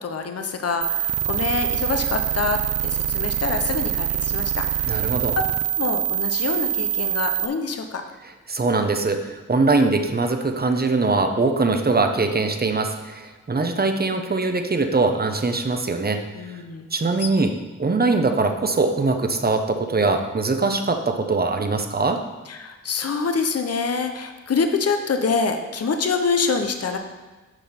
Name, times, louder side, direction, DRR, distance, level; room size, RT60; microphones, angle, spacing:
voice 1, 0.0-5.1 5.8-8.0 16.3-16.9 17.2-17.5 22.5-27.0, left 5 dB, 55° left, 6 dB, 0.8 m, -26 dB
sound 1, 0.8-7.5, right 11 dB, 55° right, 0.5 m, -24 dB
voice 2, 4.9-5.4 8.5-16.2 16.9-17.5 17.8-22.2, right 3 dB, 30° right, 6 dB, 0.9 m, -22 dB
9.1 x 5.8 x 4.3 m, 1.2 s
cardioid pair, 75°, 30 cm